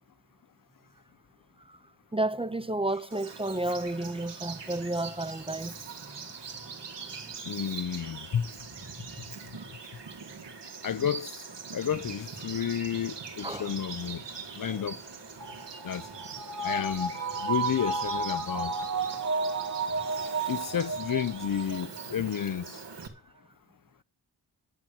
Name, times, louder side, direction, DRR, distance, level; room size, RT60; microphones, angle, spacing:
voice 1, 1.6-7.6 9.0-9.3 13.4-13.8 14.7-14.9 15.7-15.9, right 2 dB, 15° right, 0.6 m, -33 dB
Bird vocalization bird call bird song, 3.1-23.1, right 5 dB, 85° right, 2.2 m, -42 dB
voice 2, 7.4-8.5 10.8-14.2 14.5-15.0 15.8-16.1 16.6-17.1 17.4-18.7 20.5-22.8, left 8 dB, 50° left, 0.6 m, -31 dB
sound 1, 15.4-22.1 22.4-22.5, right 3 dB, 40° right, 1.8 m, -32 dB
11.0 x 7.0 x 8.6 m
wide cardioid pair, 65°, 41 cm